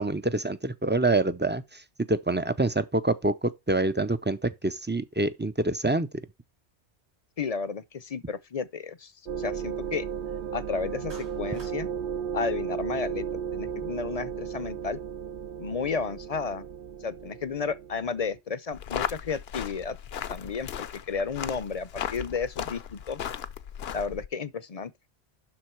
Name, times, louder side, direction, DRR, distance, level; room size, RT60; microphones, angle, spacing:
voice 1, 0.0-1.8 2.1-6.1, right 2 dB, 15° right, 0.3 m, -26 dB
voice 2, 7.4-9.1 9.4-10.1 10.5-11.9 12.3-13.3 13.5-15.0 15.6-16.7 17.0-20.0 20.3-23.3 23.9-24.9, left 5 dB, 40° left, 0.6 m, -32 dB
sound 1, 9.3-18.4, right 8 dB, 60° right, 0.7 m, -35 dB
Clapping, 11.1-11.8, right 3 dB, 85° right, 2.5 m, -49 dB
sound 2, 18.7-24.3, left 9 dB, 70° left, 0.9 m, -36 dB
12.0 x 3.9 x 4.4 m
omnidirectional pair, 1.1 m